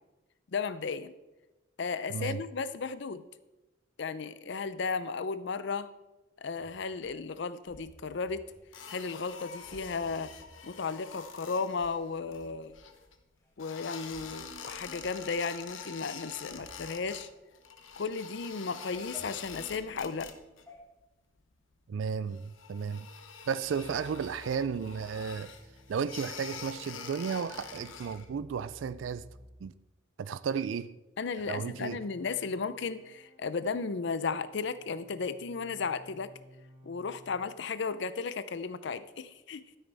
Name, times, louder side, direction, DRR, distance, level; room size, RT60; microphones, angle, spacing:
voice 1, 0.5-1.1 1.8-3.3 4.0-5.9 6.4-8.5 8.9-10.3 10.6-12.7 13.6-17.3 18.0-20.3 31.2-36.3 36.8-39.8, left 5 dB, 65° left, 0.5 m, -34 dB
voice 2, 2.1-2.4 21.9-23.1 23.5-25.5 25.9-29.3 29.6-29.7 30.2-31.0 31.5-32.0, right 6 dB, 75° right, 0.4 m, -34 dB
sound 1, 6.5-7.2 7.6-8.6 9.0-9.3 9.6-10.5 11.1-11.2 11.7-12.8 13.4-13.5 13.8-14.3 14.6-15.2 15.6-15.9 16.2-18.0 18.4-19.9 20.7-20.8, left 1 dB, 15° left, 2.1 m, -55 dB
sound 2, 8.7-13.2 13.6-17.3 17.5-20.6 20.9-21.4 21.7-21.8 22.3-28.3, left 6 dB, 85° left, 1.0 m, -46 dB
sound 3, 23.6-29.6 31.4-37.5, equal, 30° right, 2.8 m, -56 dB
12.0 x 10.0 x 3.4 m
head